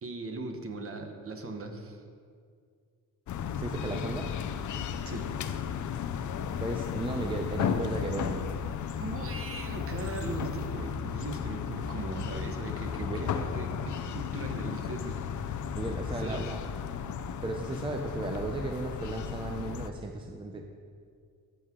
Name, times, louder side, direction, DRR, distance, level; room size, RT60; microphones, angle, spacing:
voice 1, 0.0-2.0 5.0-5.3 9.0-15.2 16.1-16.4, right 2 dB, 40° right, 4 dB, 1.1 m, -39 dB
sound 1, 3.3-19.9, left 7 dB, 60° left, 0.6 m, -34 dB
voice 2, 3.6-4.3 6.6-8.4 13.0-13.4 15.7-16.6 17.4-20.6, right 2 dB, 15° right, 3 dB, 0.6 m, -35 dB
13.5 x 8.1 x 3.7 m, 2.1 s
wide cardioid pair, 145°, 35 cm